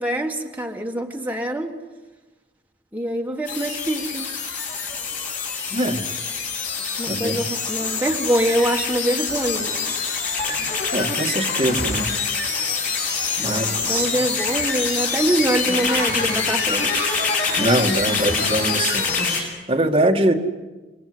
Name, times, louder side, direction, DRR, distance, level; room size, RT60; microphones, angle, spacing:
voice 1, 0.0-1.8 2.9-4.3 7.0-10.0 13.4-17.2, right 1 dB, 10° right, 1.7 m, -24 dB
sound 1, 3.5-19.4, left 4 dB, 45° left, 7.5 m, -25 dB
voice 2, 5.7-6.1 7.1-7.5 10.9-12.1 13.4-14.1 17.6-20.3, right 1 dB, 30° right, 2.0 m, -23 dB
27.5 x 23.0 x 8.0 m
head